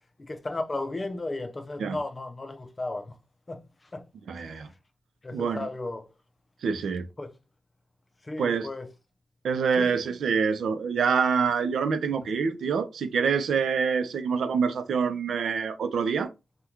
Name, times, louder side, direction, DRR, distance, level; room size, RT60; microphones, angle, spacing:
voice 1, 0.2-3.2 3.5-4.1 4.3-4.7 5.2-6.1 7.2-7.3 8.2-8.9 9.8-10.0, left 2 dB, 25° left, 0.4 m, -35 dB
voice 2, 4.3-4.7 5.3-5.7 6.6-7.1 8.4-8.7 9.4-16.3, right 6 dB, 90° right, 0.5 m, -26 dB
3.6 x 2.2 x 2.9 m
wide cardioid pair, 150°, 0 cm